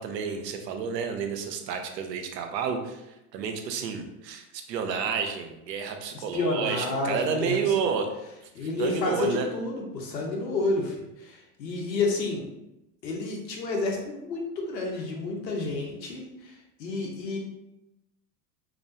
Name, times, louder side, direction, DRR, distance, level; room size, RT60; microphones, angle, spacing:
voice 1, 0.0-8.1 8.8-9.5, right 6 dB, 85° right, 5 dB, 0.7 m, -30 dB
voice 2, 6.1-7.6 8.5-10.9 11.2-12.4 13.0-16.5 16.8-17.4, left 3 dB, 90° left, 0 dB, 1.0 m, -30 dB
3.6 x 3.0 x 2.7 m, 0.91 s
hypercardioid pair, 100°, 49 cm